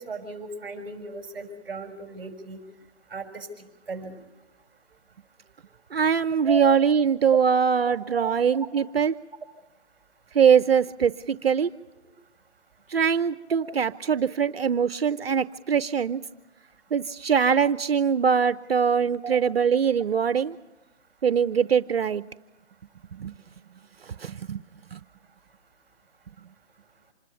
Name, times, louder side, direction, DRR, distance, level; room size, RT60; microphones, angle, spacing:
voice 1, 0.0-2.6 3.1-4.2 6.5-6.6 7.8-8.3 19.2-19.4, right 4 dB, 5° right, 1 dB, 5.4 m, -36 dB
voice 2, 5.9-9.1 10.3-11.7 12.9-16.2 16.9-20.5 21.2-22.2 23.2-23.3 24.2-24.6 24.9-25.0, right 7 dB, 60° right, 13 dB, 0.8 m, -22 dB
27.0 x 21.0 x 7.0 m, 1.1 s
hypercardioid pair, 165°, 35 cm